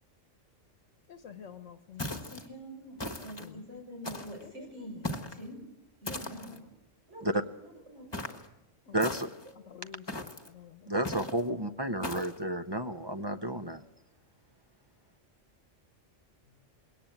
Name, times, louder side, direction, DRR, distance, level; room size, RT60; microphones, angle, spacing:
voice 1, 1.1-2.2 3.2-3.6 4.4-5.0 5.3-5.4 8.9-9.2 9.7-10.9, left 8 dB, 75° left, 9 dB, 1.3 m, -50 dB
sound 1, 2.0-2.5 3.0-3.5 4.0-4.5 5.0-5.4 6.1-6.6 8.1-8.5 9.0-9.5 10.1-10.5 11.0-11.4 12.0-12.4, left 2 dB, 20° left, 1.5 m, -38 dB
voice 2, 2.0-5.6 6.0-6.7 7.1-7.3 7.6-8.3 16.4-16.6, equal, 65° right, 0 dB, 7.1 m, -46 dB
voice 3, 8.9-9.3 10.9-13.8, right 1 dB, 25° right, 8 dB, 0.6 m, -32 dB
21.5 x 18.0 x 7.9 m, 0.89 s
omnidirectional pair, 1.3 m